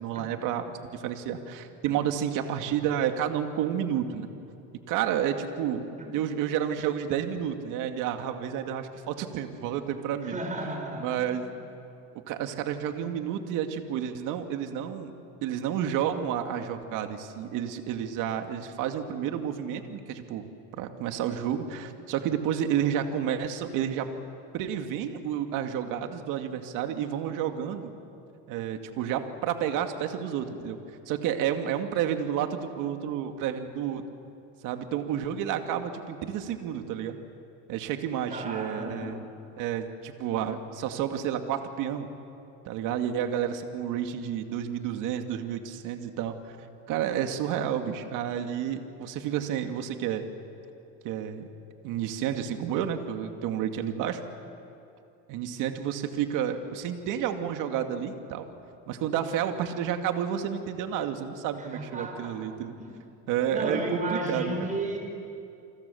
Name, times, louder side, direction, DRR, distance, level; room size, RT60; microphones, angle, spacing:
voice 1, 0.0-4.3 4.9-5.9 6.1-10.4 11.0-11.5 12.3-15.1 15.4-24.1 24.5-27.9 28.5-30.8 31.1-34.0 34.6-37.2 37.7-39.3 39.6-42.1 42.6-46.3 46.9-50.3 51.0-51.5 51.8-54.2 55.3-58.5 58.9-62.7 63.3-64.7, right 9 dB, 60° right, 6 dB, 2.3 m, -30 dB
voice 2, 10.2-11.3 38.3-39.2 61.6-62.3 62.8-62.9 63.5-65.0, right 2 dB, 20° right, 3 dB, 5.7 m, -33 dB
29.0 x 25.5 x 7.1 m, 2.6 s
cardioid pair, 130°, 35 cm